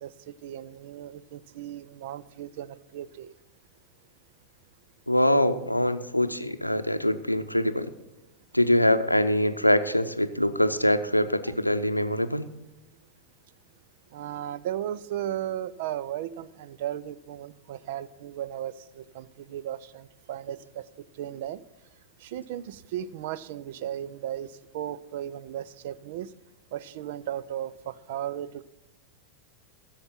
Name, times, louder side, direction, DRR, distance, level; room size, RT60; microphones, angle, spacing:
voice 1, 0.0-3.3 11.4-11.5 14.1-20.9 21.1-21.6 22.2-26.3 26.7-28.6, right 11 dB, 50° right, 17 dB, 0.4 m, -36 dB
voice 2, 5.1-7.9 8.5-12.5, left 1 dB, 90° left, 10 dB, 0.6 m, -24 dB
15.0 x 7.2 x 5.7 m, 0.96 s
figure-of-eight pair, 90°, 0 cm